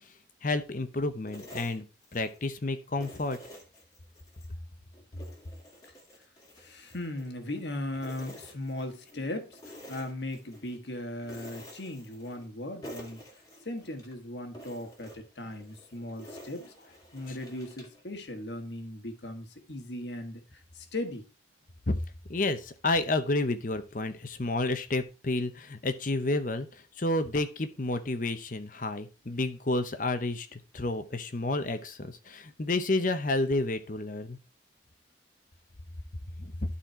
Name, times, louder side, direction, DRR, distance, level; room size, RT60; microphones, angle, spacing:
voice 1, 0.4-1.8 2.1-3.4 17.3-17.4 21.9-22.0 22.3-34.4 36.4-36.5, left 2 dB, 45° left, 0.8 m, -30 dB
sound 1, 1.3-2.5 3.0-4.5 4.9-7.6 7.9-9.2 9.5-10.8 11.2-12.5 12.8-14.1 14.5-18.0, equal, 20° left, 1.8 m, -49 dB
voice 2, 6.6-9.6 9.9-13.2 13.6-16.7 17.1-21.2, left 1 dB, 65° left, 1.4 m, -38 dB
12.0 x 4.3 x 4.3 m
head